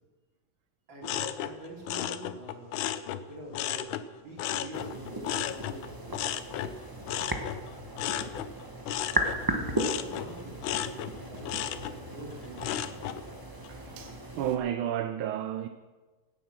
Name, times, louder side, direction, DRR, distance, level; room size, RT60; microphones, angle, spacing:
voice 1, 0.9-2.7 3.3-7.1 7.9-8.5 9.0-13.0, right 1 dB, 60° right, 4.1 m, -46 dB
sound 1, 1.0-4.1 4.4-13.2 13.6-14.1, left 11 dB, 75° left, 1.4 m, -35 dB
sound 2, 4.7-14.6, right 1 dB, 15° right, 0.8 m, -36 dB
voice 2, 13.7-15.7, right 10 dB, 75° right, 1.4 m, -32 dB
17.0 x 8.2 x 6.0 m
omnidirectional pair, 2.3 m